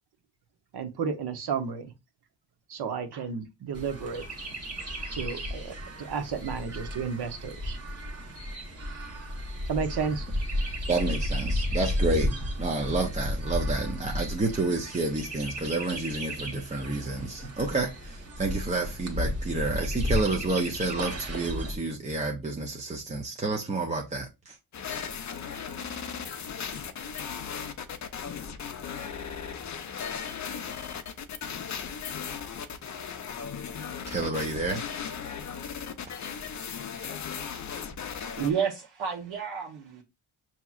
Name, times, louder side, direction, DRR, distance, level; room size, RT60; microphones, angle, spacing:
voice 1, 0.7-1.9 2.7-4.2 5.1-7.8 9.7-10.3, right 6 dB, 55° right, 0.8 m, -32 dB
Chirp tweet, 3.7-21.8, equal, 30° right, 1.1 m, -33 dB
voice 2, 10.9-24.6 34.1-34.8, right 2 dB, 15° right, 0.5 m, -30 dB
sound 1, 24.7-38.5, left 7 dB, 40° left, 0.6 m, -37 dB
voice 3, 38.2-40.0, right 7 dB, 80° right, 1.0 m, -31 dB
5.8 x 2.9 x 2.4 m
cardioid pair, 125°, 48 cm